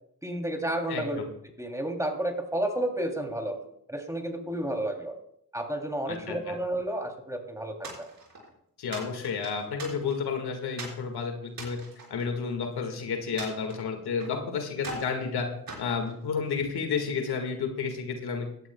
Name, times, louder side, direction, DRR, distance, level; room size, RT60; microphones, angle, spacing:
voice 1, 0.2-1.2 1.6-3.6 3.9-5.2 5.5-8.1, right 1 dB, 10° right, 3 dB, 3.0 m, -31 dB
voice 2, 0.9-1.2 6.1-6.4 8.8-11.8 12.1-15.5 15.8-18.5, left 5 dB, 80° left, 4 dB, 1.9 m, -31 dB
sound 1, 7.8-8.5 8.9-10.3 10.8-11.0 11.5-12.8 13.4-14.4 14.8-15.2 15.7-16.7, right 2 dB, 65° right, 5.3 m, -42 dB
17.0 x 12.5 x 2.3 m, 0.71 s
supercardioid pair, 50°, 38 cm